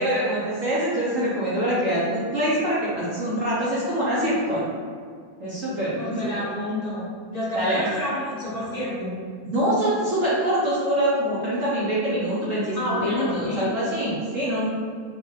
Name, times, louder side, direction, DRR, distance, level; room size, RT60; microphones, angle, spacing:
voice 1, 0.0-4.6 5.4-6.3 7.5-7.8 9.4-14.7, right 1 dB, 55° right, -9 dB, 1.1 m, -24 dB
voice 2, 6.0-9.1 12.7-13.7, left 1 dB, 30° left, -8 dB, 1.0 m, -29 dB
3.8 x 3.1 x 3.2 m, 2.1 s
omnidirectional pair, 1.7 m